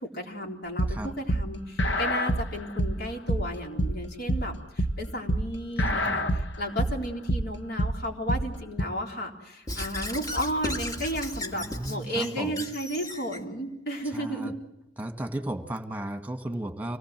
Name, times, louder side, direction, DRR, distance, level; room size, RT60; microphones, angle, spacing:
voice 1, 0.0-14.6, equal, 60° left, 0 dB, 4.0 m, -33 dB
sound 1, 0.8-8.8, equal, 85° left, 1.3 m, -27 dB
voice 2, 5.8-6.4 11.5-12.7 14.1-14.5 15.0-17.0, right 1 dB, 10° right, 6 dB, 1.9 m, -35 dB
Squeak / Writing, 9.7-13.4, left 1 dB, 20° left, 1.6 m, -35 dB
26.0 x 19.0 x 7.6 m, 0.90 s
head